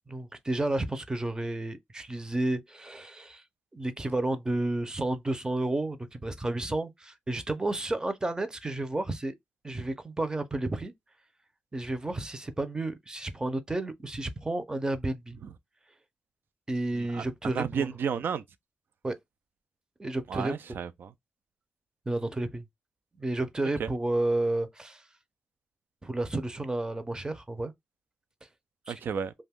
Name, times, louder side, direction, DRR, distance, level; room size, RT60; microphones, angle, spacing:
voice 1, 0.1-3.4 3.7-9.3 9.6-10.9 11.7-15.4 16.7-17.9 19.0-19.2 20.0-20.8 22.1-22.6 23.2-25.0 26.0-27.7 28.9-29.0, right 2 dB, 20° right, 0.6 m, -31 dB
voice 2, 17.1-18.4 20.3-21.1 23.8-23.9 28.9-29.3, right 7 dB, 70° right, 0.4 m, -32 dB
2.5 x 2.3 x 3.4 m
cardioid pair, 70°, 4 cm